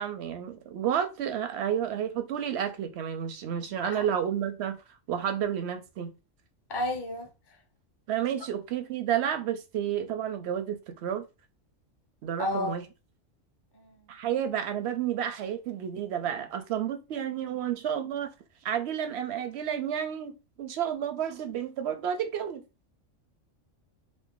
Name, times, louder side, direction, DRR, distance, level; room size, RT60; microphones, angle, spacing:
voice 1, 0.0-4.8 5.1-6.1 8.1-11.2 12.2-12.9 14.1-18.3 18.6-22.6, right 9 dB, 65° right, 0.7 m, -31 dB
voice 2, 6.7-7.3 12.4-12.8 13.7-13.9, left 1 dB, 30° left, 0.5 m, -31 dB
2.5 x 2.5 x 3.7 m
omnidirectional pair, 1.4 m